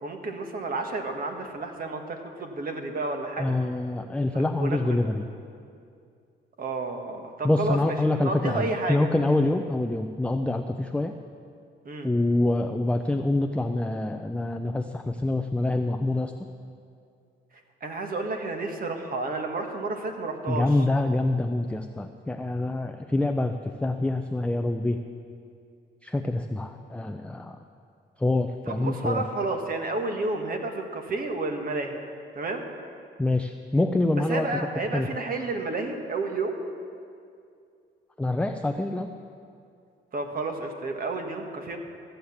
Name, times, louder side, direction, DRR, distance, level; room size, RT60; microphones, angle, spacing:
voice 1, 0.0-3.5 4.3-5.0 6.6-9.1 11.8-12.1 17.8-20.7 28.6-32.0 32.3-32.6 34.3-36.5 40.1-41.8, right 3 dB, 45° right, 4 dB, 1.6 m, -31 dB
voice 2, 3.4-5.2 7.4-11.1 12.0-16.3 20.5-25.0 26.0-27.6 28.2-29.2 33.2-34.5 34.9-35.1 38.2-39.1, left 2 dB, 5° left, 6 dB, 0.5 m, -26 dB
14.5 x 8.0 x 7.2 m, 2.4 s
cardioid pair, 90°, 20 cm